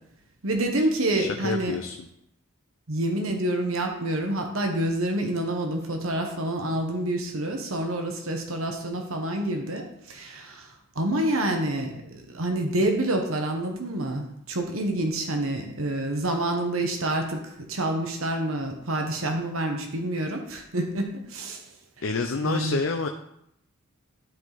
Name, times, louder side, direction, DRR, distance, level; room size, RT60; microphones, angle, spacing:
voice 1, 0.4-1.8 2.9-21.6 22.4-22.8, right 1 dB, 80° right, 3 dB, 1.2 m, -28 dB
voice 2, 1.1-2.0 22.0-23.1, left 4 dB, 65° left, 5 dB, 0.6 m, -28 dB
12.0 x 4.6 x 4.0 m, 0.76 s
head